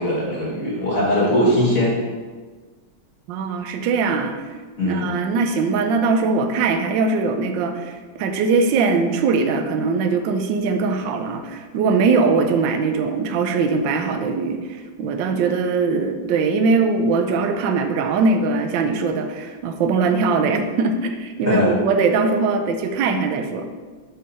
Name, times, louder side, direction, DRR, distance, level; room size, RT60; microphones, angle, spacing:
voice 1, 0.0-1.9 4.8-5.1 21.5-21.7, left 1 dB, 45° left, -7 dB, 1.6 m, -20 dB
voice 2, 3.3-4.3 4.9-23.7, right 4 dB, 70° right, 6 dB, 1.2 m, -21 dB
5.5 x 5.4 x 4.3 m, 1.4 s
omnidirectional pair, 2.3 m